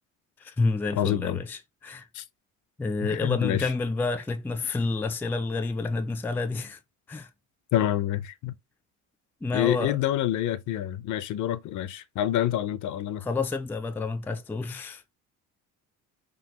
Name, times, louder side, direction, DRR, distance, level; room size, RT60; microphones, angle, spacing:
voice 1, 0.4-2.1 2.8-6.8 7.1-7.3 9.4-10.0 13.2-15.1, left 3 dB, 5° left, 0.3 m, -29 dB
voice 2, 1.0-1.4 2.2-2.3 3.0-3.7 7.7-8.5 9.5-13.2, left 12 dB, 55° left, 0.5 m, -27 dB
3.8 x 2.3 x 2.8 m
cardioid pair, 105°, 35 cm